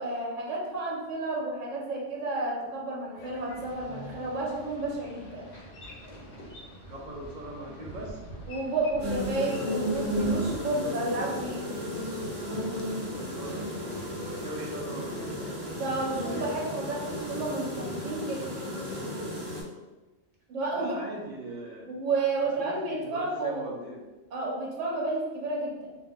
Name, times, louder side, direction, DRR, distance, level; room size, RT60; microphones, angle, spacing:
voice 1, 0.0-5.5 8.5-11.7 15.7-18.5 20.5-20.9 21.9-23.8 24.3-25.9, right 2 dB, 85° right, -2 dB, 1.0 m, -31 dB
sound 1, 3.2-17.5, equal, 75° left, 0.3 m, -50 dB
Boat Water vehicle, 3.5-10.6, right 1 dB, 55° left, 0.8 m, -46 dB
voice 2, 6.9-8.2 13.1-15.4 20.7-21.9 22.4-24.0, right 1 dB, 55° right, -2 dB, 0.5 m, -40 dB
sound 2, 9.0-19.6, equal, 30° right, 0.8 m, -33 dB
2.4 x 2.2 x 3.6 m, 1.2 s
omnidirectional pair, 1.2 m